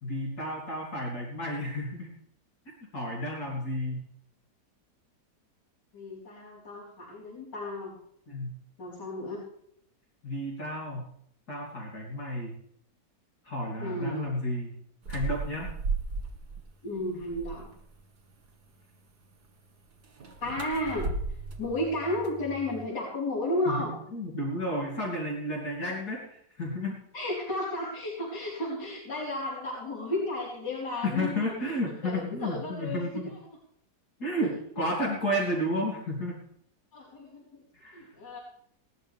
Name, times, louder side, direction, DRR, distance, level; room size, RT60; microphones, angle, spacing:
voice 1, 0.0-2.1 2.9-4.0 8.3-8.5 10.2-11.1 11.5-12.5 13.4-14.7 15.1-15.7 23.7-27.0 31.0-33.3 34.2-36.4 37.8-38.1, equal, 65° left, -4 dB, 3.6 m, -32 dB
voice 2, 5.9-7.9 8.8-9.5 13.8-14.3 16.8-17.7 20.4-21.1 21.6-24.0 25.8-25.9 27.1-31.5 32.0-33.1 36.9-37.4 37.9-38.4, left 1 dB, 85° left, -8 dB, 5.3 m, -33 dB
sound 1, 15.0-16.6 17.0-17.8 20.0-22.9, right 3 dB, 70° right, 2.3 m, -35 dB
20.5 x 12.5 x 3.5 m, 0.71 s
omnidirectional pair, 1.8 m